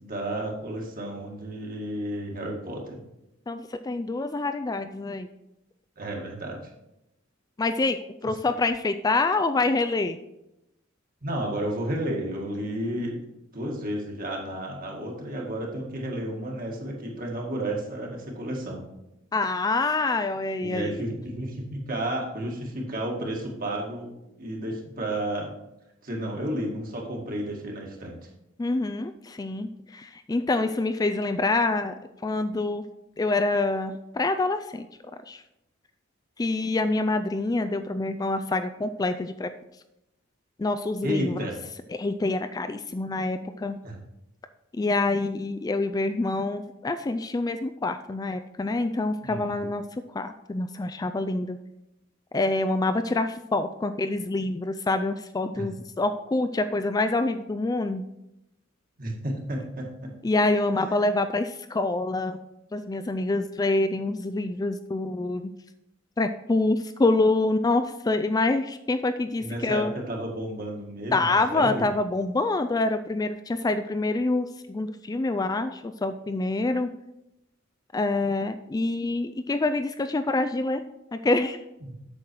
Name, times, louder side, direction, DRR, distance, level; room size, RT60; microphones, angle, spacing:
voice 1, 0.0-3.0 6.0-6.6 11.2-13.2 13.5-18.9 20.6-24.1 24.4-25.5 26.0-28.3 41.0-41.5 43.8-44.0 49.2-49.7 55.6-55.7 59.0-60.1 69.4-71.8 81.8-82.0, right 1 dB, 45° right, -1 dB, 2.0 m, -32 dB
voice 2, 3.5-5.3 7.6-10.2 19.3-21.1 28.6-31.9 32.2-32.8 33.2-34.9 35.3-35.4 36.4-39.5 40.6-41.4 42.0-43.8 44.8-51.6 52.3-58.0 60.2-62.4 62.7-65.5 66.2-69.9 71.1-76.9 77.9-80.8 81.1-81.6, left 2 dB, 20° left, 8 dB, 0.3 m, -26 dB
8.4 x 6.5 x 4.6 m, 0.88 s
head